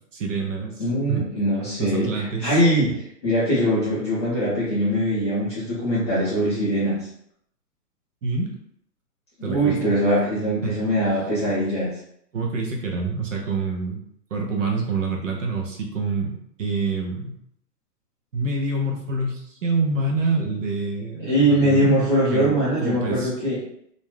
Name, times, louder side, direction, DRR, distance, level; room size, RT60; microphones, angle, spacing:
voice 1, 0.1-1.3 1.8-2.6 8.2-8.5 9.4-9.8 10.6-10.8 12.3-14.0 14.3-17.4 18.3-22.0 22.3-22.5 22.8-23.3, right 3 dB, 50° right, 0 dB, 0.6 m, -26 dB
voice 2, 0.8-7.1 9.4-11.9 21.2-23.6, equal, 20° left, -10 dB, 0.6 m, -22 dB
2.5 x 2.1 x 3.1 m, 0.71 s
hypercardioid pair, 155°, 49 cm